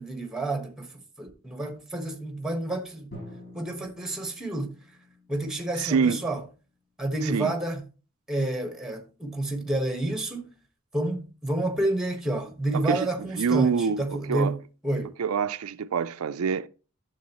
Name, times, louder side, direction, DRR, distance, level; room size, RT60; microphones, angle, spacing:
voice 1, 0.0-3.1 3.5-4.8 5.3-6.4 7.0-7.8 8.3-10.5 10.9-14.6 14.8-15.1, right 2 dB, ahead, 1.2 m, -29 dB
Drum, 3.1-6.9, left 1 dB, 55° left, 4.8 m, -48 dB
voice 2, 5.8-6.2 7.2-7.5 12.9-14.0 14.3-14.5 15.2-16.7, right 6 dB, 80° right, 0.4 m, -26 dB
11.5 x 7.0 x 2.9 m
head